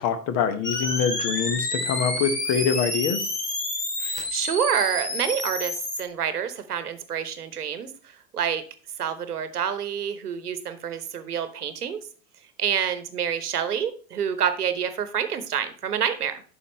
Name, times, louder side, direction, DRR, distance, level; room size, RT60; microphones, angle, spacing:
voice 1, 0.0-3.2, left 7 dB, 35° left, 10 dB, 1.0 m, -25 dB
sound 1, 0.6-6.0, left 2 dB, 85° left, 2.4 m, -29 dB
voice 2, 4.0-8.6 9.0-12.0 12.6-16.4, right 8 dB, 70° right, 11 dB, 1.0 m, -28 dB
9.4 x 6.1 x 3.1 m, 0.41 s
figure-of-eight pair, 85°, 47 cm